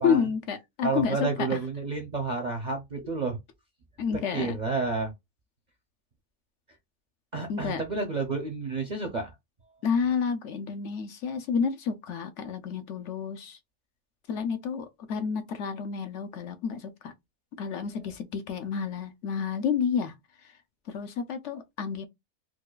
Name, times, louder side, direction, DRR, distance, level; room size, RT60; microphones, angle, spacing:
voice 1, 0.0-1.6 4.0-4.6 7.5-7.8 9.8-13.6 14.3-17.1 17.6-20.1 20.9-22.1, left 6 dB, 65° left, 0.8 m, -30 dB
voice 2, 0.8-3.4 4.3-5.1 7.3-9.3, right 4 dB, 50° right, 0.5 m, -30 dB
4.5 x 2.3 x 2.3 m
omnidirectional pair, 1.5 m